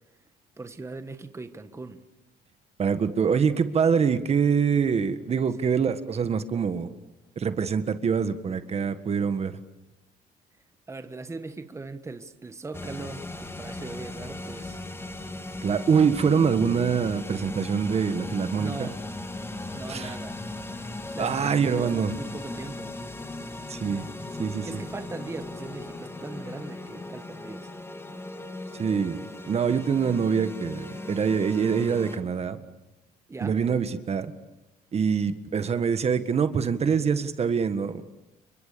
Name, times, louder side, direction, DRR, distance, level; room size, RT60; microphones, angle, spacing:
voice 1, 0.6-2.0 5.6-5.9 10.9-14.8 18.6-19.0 19.7-20.4 21.1-22.9 24.6-27.7 33.3-33.6, right 3 dB, 15° right, 1.5 m, -39 dB
voice 2, 2.8-6.9 7.3-9.6 15.6-18.9 19.9-20.1 21.2-22.2 23.7-24.1 24.4-24.8 28.8-32.6 33.4-34.3 34.9-38.1, right 6 dB, 40° right, 1.7 m, -25 dB
sound 1, 12.7-32.2, left 2 dB, 15° left, 2.8 m, -37 dB
30.0 x 24.0 x 7.0 m
cardioid pair, 110°, 17 cm